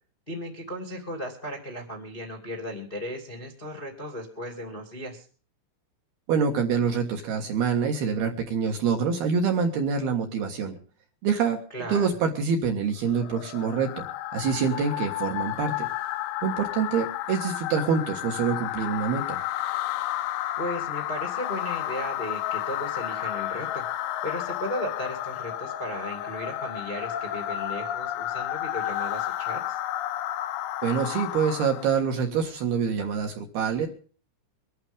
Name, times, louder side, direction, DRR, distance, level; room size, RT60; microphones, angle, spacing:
voice 1, 0.3-5.2 11.7-12.2 20.6-23.8 24.2-29.8, equal, 25° left, 2 dB, 1.0 m, -36 dB
voice 2, 6.3-10.8 11.2-11.6 11.9-14.0 14.3-15.9 16.4-19.4 30.8-33.9, right 6 dB, 60° right, 3 dB, 2.9 m, -26 dB
sound 1, 13.1-32.0, left 13 dB, 80° left, 3.1 m, -32 dB
24.0 x 11.5 x 3.7 m, 0.41 s
omnidirectional pair, 6.0 m